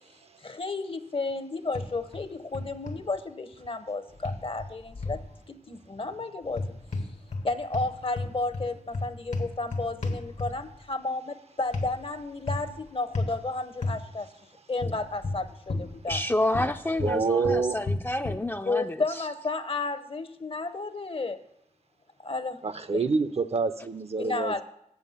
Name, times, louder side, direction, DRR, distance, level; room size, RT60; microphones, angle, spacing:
voice 1, 0.4-5.2 5.5-6.7 7.4-14.3 14.7-16.2 18.6-21.4 22.2-22.6 22.9-23.0 24.2-24.6, left 3 dB, 45° left, 11 dB, 0.7 m, -32 dB
sound 1, 1.7-2.2 2.5-3.0 4.2-5.3 6.5-7.5 7.7-10.8 11.7-11.9 12.5-12.8 13.1-13.4 13.8-14.0 14.8-16.3 16.5-18.5, left 2 dB, 75° left, 1.1 m, -32 dB
voice 2, 16.1-19.0, left 1 dB, 15° left, 6 dB, 0.4 m, -29 dB
voice 3, 17.0-17.8 22.6-24.6, right 4 dB, 55° right, 11 dB, 0.6 m, -27 dB
7.9 x 7.1 x 5.6 m, 0.76 s
cardioid pair, 50°, 12 cm